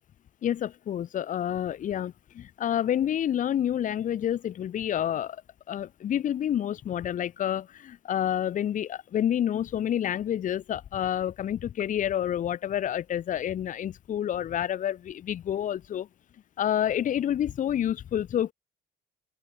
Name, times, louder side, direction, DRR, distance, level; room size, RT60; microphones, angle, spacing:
voice 1, 0.4-5.4 5.7-16.1 16.6-18.5, left 10 dB, 50° left, 1.2 m, -28 dB
open air
cardioid pair, 110°, 17 cm